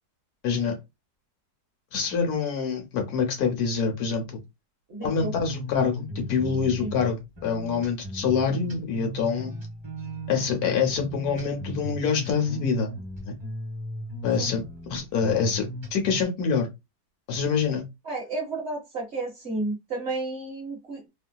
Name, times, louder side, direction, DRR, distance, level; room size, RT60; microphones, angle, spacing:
voice 1, 0.4-0.8 1.9-4.4 5.0-9.6 10.3-12.9 13.3-13.4 14.2-16.7 17.3-17.8, left 6 dB, 70° left, 1.3 m, -26 dB
voice 2, 4.9-5.3 6.8-6.9 14.4-14.5 18.0-21.1, right 2 dB, 50° right, 1.0 m, -32 dB
sound 1, 5.1-16.2, equal, 15° right, 1.5 m, -37 dB
3.1 x 2.7 x 2.2 m
omnidirectional pair, 1.7 m